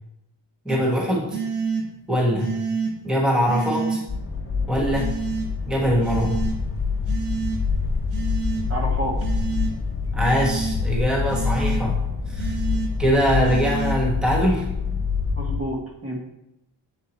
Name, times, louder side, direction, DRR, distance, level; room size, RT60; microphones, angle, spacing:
voice 1, 0.6-1.4 2.1-2.6 3.0-4.0 4.7-5.1 5.7-6.4 10.1-12.5 13.0-14.7, equal, ahead, -3 dB, 1.1 m, -22 dB
sound 1, 0.7-0.8 1.3-1.8 2.4-2.9 3.4-4.0 4.9-5.4 6.0-6.5 7.0-7.6 8.1-8.6 9.2-9.7 10.2-10.7 11.3-11.8 12.4-12.9 13.4-13.9, right 5 dB, 80° right, 2.4 m, -29 dB
sound 2, 4.1-15.6, left 4 dB, 25° left, 1.5 m, -26 dB
voice 2, 8.7-9.2 15.4-16.2, equal, 30° right, -1 dB, 1.2 m, -29 dB
7.4 x 4.5 x 4.2 m, 0.85 s
wide cardioid pair, 165°, 47 cm